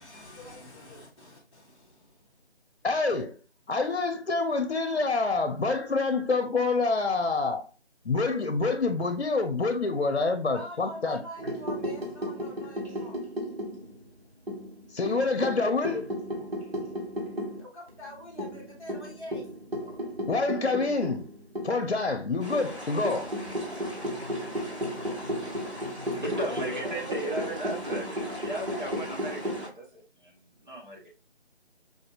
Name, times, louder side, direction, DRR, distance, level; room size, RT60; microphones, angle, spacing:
voice 1, 0.0-2.3 10.4-13.2 17.6-19.5 26.3-27.6, equal, 25° left, 0.9 m, -44 dB
voice 2, 2.8-3.4 3.7-7.6 8.0-11.2 14.9-16.1 20.3-21.3 21.6-23.3, left 3 dB, 65° left, 0.7 m, -27 dB
sound 1, 11.4-14.1 14.5-17.6 17.9-18.0 18.4-21.9 22.5-29.6, equal, 65° right, 1.5 m, -35 dB
sound 2, 22.4-29.7, left 1 dB, 30° right, 1.4 m, -41 dB
voice 3, 25.3-25.8 26.2-30.3 30.6-31.0, right 1 dB, 45° right, 1.4 m, -36 dB
4.9 x 2.7 x 2.4 m
figure-of-eight pair, 160°, 33 cm